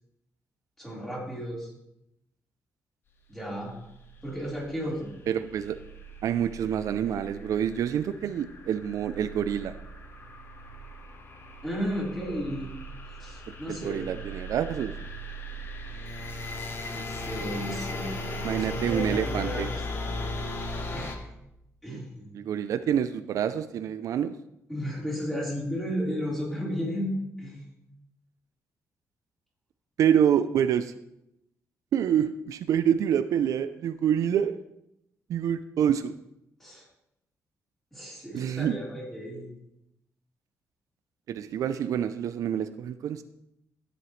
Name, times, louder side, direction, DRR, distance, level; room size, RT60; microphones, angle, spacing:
voice 1, 0.8-1.7 3.3-3.7 4.2-5.1 11.6-12.7 13.1-14.1 16.8-18.1 18.4-19.7 20.9-21.3 21.8-22.4 24.7-27.6 36.6-36.8 37.9-39.5, equal, 5° left, -6 dB, 4.1 m, -33 dB
sound 1, 3.5-21.2, left 1 dB, 45° left, 1.1 m, -38 dB
voice 2, 5.3-5.8 6.2-9.7 13.5-14.9 18.4-19.7 21.9-22.0 22.3-24.4 30.0-30.9 31.9-34.6 35.3-36.1 38.3-38.8 41.3-43.2, right 9 dB, 70° right, 11 dB, 0.4 m, -27 dB
13.5 x 7.9 x 3.2 m, 0.84 s
cardioid pair, 130°, 6 cm